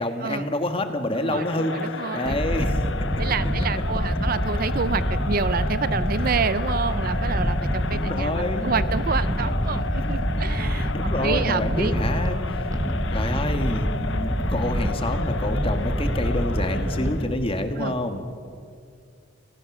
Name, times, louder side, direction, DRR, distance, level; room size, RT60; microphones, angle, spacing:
voice 1, 0.0-2.8 7.9-8.7 10.9-12.7 13.1-18.3, left 1 dB, 30° left, 6 dB, 1.6 m, -28 dB
Crowd, 1.2-17.4, left 4 dB, 70° left, 0.9 m, -34 dB
voice 2, 1.2-2.4 3.2-10.9 11.2-11.9 17.8-17.9, right 5 dB, 50° right, 15 dB, 0.6 m, -28 dB
sound 1, 2.3-17.3, equal, 20° right, 1.4 m, -26 dB
28.5 x 17.5 x 6.2 m, 2.3 s
head